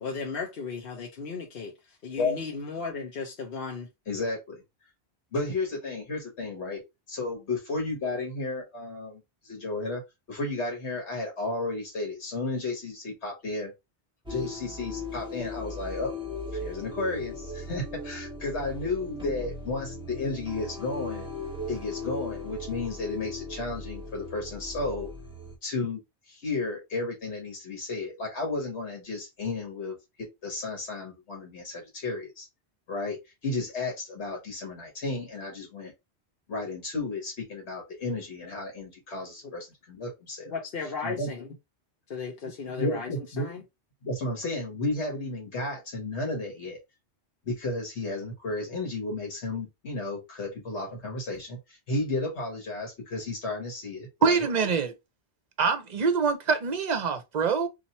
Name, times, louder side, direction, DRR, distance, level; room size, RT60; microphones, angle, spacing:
voice 1, 0.0-3.9 39.4-39.5 40.5-41.5 42.1-43.1 43.4-43.6, left 4 dB, 60° left, 1.0 m, -36 dB
voice 2, 4.1-4.6 5.3-6.8 7.1-10.0 10.3-13.7 14.3-16.1 16.5-21.3 21.7-25.1 25.6-26.0 26.3-32.5 32.9-35.9 36.5-40.5 40.8-41.3 42.4-43.5 44.0-46.8 47.4-54.4, left 2 dB, 80° left, 1.4 m, -33 dB
sound 1, 14.3-25.5, left 2 dB, 5° right, 1.3 m, -38 dB
voice 3, 54.2-54.9 55.6-57.7, right 5 dB, 45° right, 0.7 m, -25 dB
2.8 x 2.8 x 4.0 m
omnidirectional pair, 1.1 m